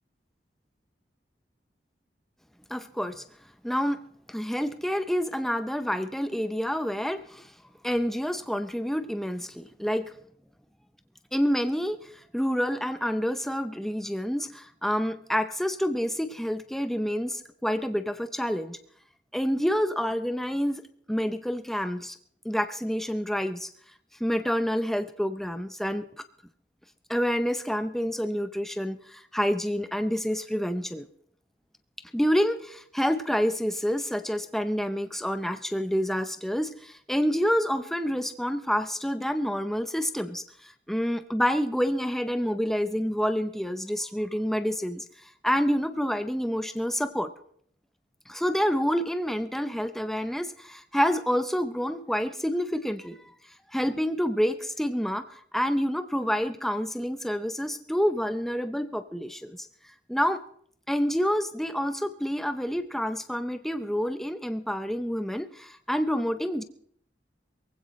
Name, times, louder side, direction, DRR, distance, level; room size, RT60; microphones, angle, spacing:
voice 1, 2.7-3.2 3.6-4.0 4.3-7.5 7.8-10.1 11.3-18.8 19.3-22.2 22.4-23.7 24.2-26.1 27.1-31.1 32.1-47.3 48.3-53.3 53.7-59.7 60.1-60.4 60.9-66.6, equal, ahead, 9 dB, 0.6 m, -28 dB
22.5 x 16.0 x 3.2 m, 0.63 s
head